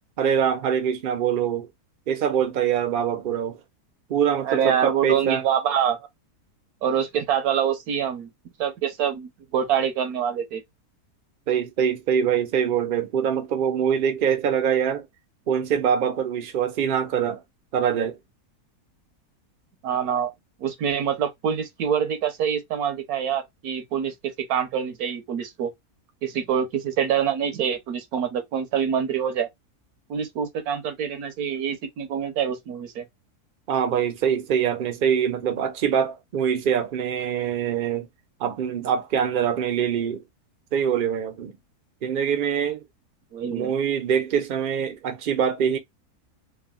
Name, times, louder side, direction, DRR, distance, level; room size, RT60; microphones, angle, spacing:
voice 1, 0.2-1.7 2.1-3.6 4.1-5.4 11.5-15.1 15.5-17.4 17.7-18.2 33.7-38.1 38.4-40.2 40.7-41.5 42.0-42.8 43.5-45.8, right 8 dB, 50° right, 0.6 m, -24 dB
voice 2, 4.4-6.1 6.8-8.3 8.6-10.6 19.8-20.3 20.6-25.7 26.2-29.5 30.1-33.0 43.3-43.7, right 8 dB, 75° right, 1.2 m, -25 dB
3.3 x 2.3 x 2.2 m
omnidirectional pair, 1.6 m